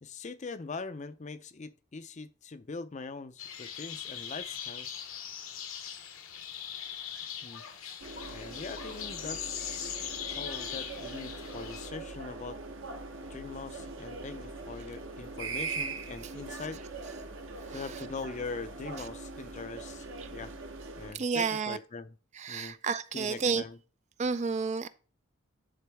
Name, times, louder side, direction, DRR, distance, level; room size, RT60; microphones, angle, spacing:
voice 1, 0.0-4.9 7.4-7.7 8.3-10.0 10.4-12.6 13.3-16.8 17.7-20.5 21.0-22.1 22.5-22.8 23.1-23.8, left 4 dB, 35° left, 0.5 m, -42 dB
sound 1, 3.4-11.9, left 8 dB, 70° left, 1.0 m, -40 dB
sound 2, 8.0-21.1, right 3 dB, 60° right, 1.0 m, -41 dB
voice 2, 17.6-18.1 19.0-19.1 20.2-20.3 21.1-21.8 22.3-23.6 24.2-24.9, right 5 dB, 35° right, 0.3 m, -31 dB
10.0 x 3.9 x 3.4 m
head